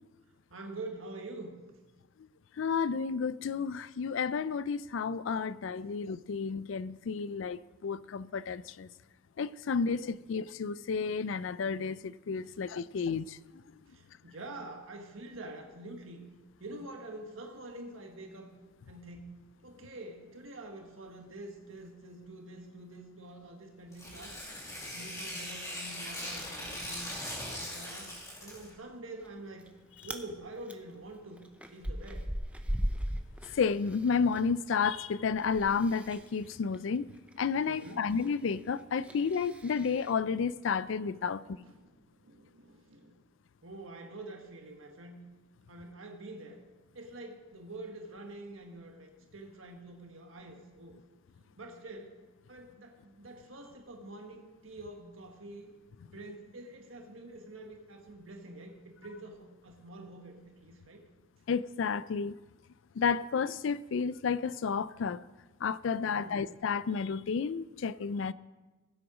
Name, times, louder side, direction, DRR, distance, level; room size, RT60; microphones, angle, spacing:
voice 1, 0.5-1.6 5.8-5.9 7.2-7.3 9.8-9.9 13.9-16.3 16.6-18.5 18.9-24.4 24.9-27.1 27.4-29.7 30.0-31.4 31.7-32.3 37.7-38.0 41.2-43.1 43.6-45.2 45.7-46.6 46.9-51.0 51.4-52.1 52.5-55.7 56.0-61.0 66.0-66.5, right 2 dB, 90° right, 1.5 m, -46 dB
voice 2, 2.6-8.9 9.4-13.4 33.5-37.1 37.4-41.6 61.5-62.4 63.0-65.2 65.6-68.3, left 5 dB, 70° left, 0.4 m, -31 dB
Tearing, 23.9-28.7, left 1 dB, 15° left, 2.3 m, -40 dB
Chewing mastication, 29.2-29.7 30.0-30.3 30.7-34.4 34.7-40.1, equal, 5° right, 0.7 m, -39 dB
16.5 x 7.8 x 5.0 m
head